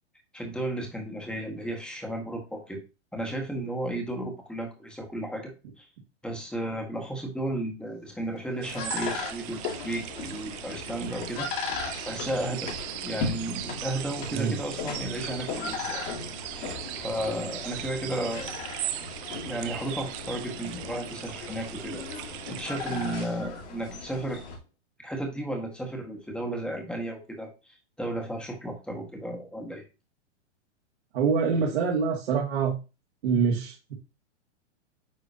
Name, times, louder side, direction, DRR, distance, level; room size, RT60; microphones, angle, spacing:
voice 1, 0.3-2.8 3.1-5.9 6.2-12.7 13.0-16.0 16.6-18.5 19.5-22.0 22.5-24.4 25.0-27.5 28.0-29.8, right 1 dB, 5° left, 2 dB, 1.5 m, -34 dB
sound 1, 8.1-24.3, left 5 dB, 40° left, 2.0 m, -41 dB
sound 2, 8.6-24.6, left 3 dB, 70° left, 3.1 m, -39 dB
sound 3, 8.6-23.3, right 13 dB, 30° right, 0.5 m, -39 dB
voice 2, 31.1-32.8 33.2-33.9, right 6 dB, 65° right, -3 dB, 1.9 m, -25 dB
9.5 x 3.7 x 2.7 m, 0.29 s
hypercardioid pair, 135°, 35 cm